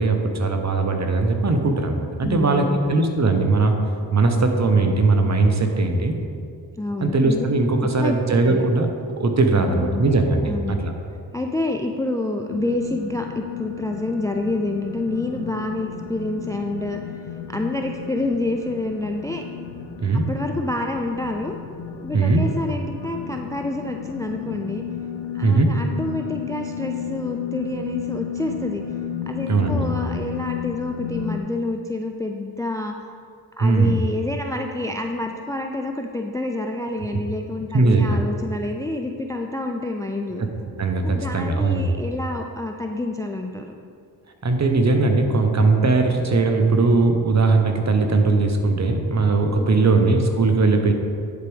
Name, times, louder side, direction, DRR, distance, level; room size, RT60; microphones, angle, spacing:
voice 1, 0.0-3.7 4.1-6.1 7.0-8.9 9.2-10.9 20.0-20.3 22.1-22.4 25.4-25.7 29.5-29.8 33.6-34.0 37.7-38.2 40.8-41.9 44.4-50.9, right 3 dB, 35° right, 5 dB, 1.0 m, -19 dB
voice 2, 2.2-3.0 6.8-7.5 7.8-8.2 8.4-8.6 9.5-10.0 10.5-10.8 11.3-17.0 17.5-19.5 20.1-21.5 22.0-24.8 25.3-28.8 29.3-32.9 33.6-40.4 41.0-43.7 49.5-50.1, left 2 dB, 10° left, 3 dB, 0.4 m, -28 dB
sound 1, 12.5-31.4, left 8 dB, 80° left, 0.6 m, -33 dB
10.5 x 4.5 x 3.5 m, 2.3 s
supercardioid pair, 45°, 44 cm